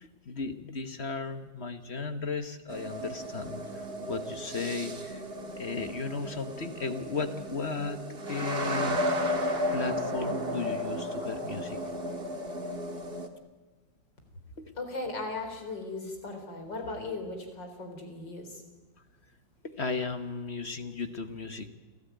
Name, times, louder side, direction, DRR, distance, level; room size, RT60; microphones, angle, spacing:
voice 1, 0.0-5.2 5.6-8.0 8.3-9.0 9.7-11.8 12.6-12.7 14.6-14.7 19.6-21.7, left 4 dB, 40° left, 9 dB, 1.4 m, -35 dB
sound 1, 2.7-13.3, equal, 30° right, 1.8 m, -34 dB
voice 2, 14.8-18.6, left 2 dB, 65° left, 5 dB, 4.6 m, -37 dB
29.5 x 12.5 x 9.3 m, 1.3 s
omnidirectional pair, 2.1 m